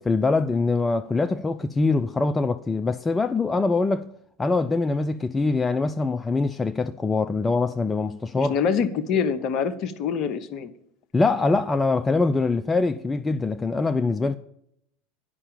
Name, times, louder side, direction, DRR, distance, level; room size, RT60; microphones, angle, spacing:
voice 1, 0.1-4.1 4.4-8.5 11.1-14.4, left 3 dB, 15° left, 0.4 m, -23 dB
voice 2, 8.4-10.7, left 6 dB, 45° left, 0.9 m, -25 dB
9.7 x 5.6 x 7.0 m
figure-of-eight pair, 80°, 0 cm